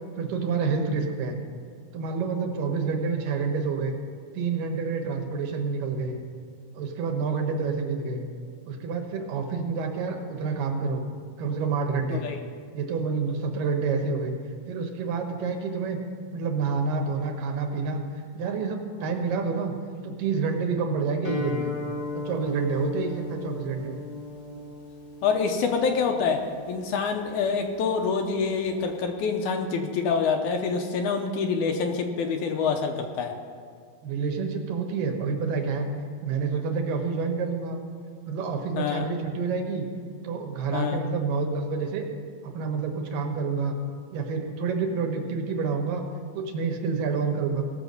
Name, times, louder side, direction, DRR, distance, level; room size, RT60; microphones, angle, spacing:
voice 1, 0.2-1.4 1.9-3.9 4.3-6.2 6.7-8.2 8.7-11.1 11.4-12.3 12.7-14.3 14.7-16.0 16.3-18.0 18.3-19.7 20.0-21.7 22.1-24.0 34.0-35.9 36.2-37.8 38.3-39.8 40.2-42.1 42.4-43.7 44.1-46.0 46.3-47.6, right 5 dB, 85° right, 3 dB, 2.8 m, -28 dB
voice 2, 12.1-12.4 25.2-26.4 26.7-33.3 38.8-39.1 40.7-41.0, left 5 dB, 75° left, 4 dB, 2.0 m, -26 dB
Guitar, 21.2-29.0, left 3 dB, 60° left, 4.4 m, -37 dB
18.0 x 6.9 x 5.3 m, 2.1 s
omnidirectional pair, 3.9 m